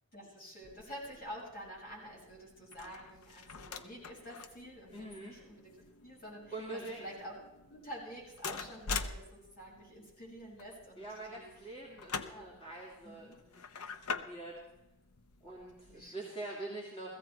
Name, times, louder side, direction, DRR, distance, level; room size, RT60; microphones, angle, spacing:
voice 1, 0.1-5.7 6.0-7.4 7.7-11.5 12.2-12.6 13.0-13.4 15.9-16.4, equal, 45° left, -3 dB, 6.0 m, -48 dB
sound 1, 0.6-16.1, left 5 dB, 90° left, 0.8 m, -46 dB
voice 2, 4.9-5.4 6.5-7.1 11.0-14.5 15.4-17.2, right 2 dB, 25° left, -4 dB, 2.5 m, -45 dB
16.0 x 15.0 x 4.4 m, 0.91 s
head